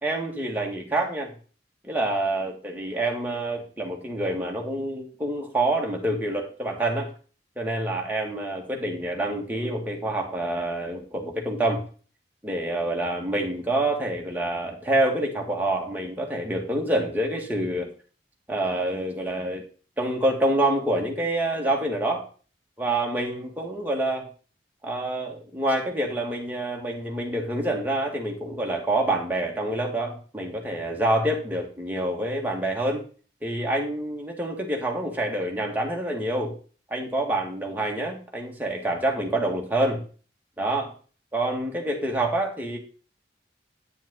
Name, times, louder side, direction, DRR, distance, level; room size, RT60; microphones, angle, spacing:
voice 1, 0.0-1.3 1.8-7.1 7.6-11.8 12.4-17.9 18.5-19.6 20.0-22.2 22.8-24.3 24.8-33.0 33.4-36.5 36.9-40.0 40.6-40.9 41.3-42.8, right 1 dB, 10° right, 0 dB, 2.0 m, -27 dB
9.5 x 7.0 x 3.9 m, 0.38 s
head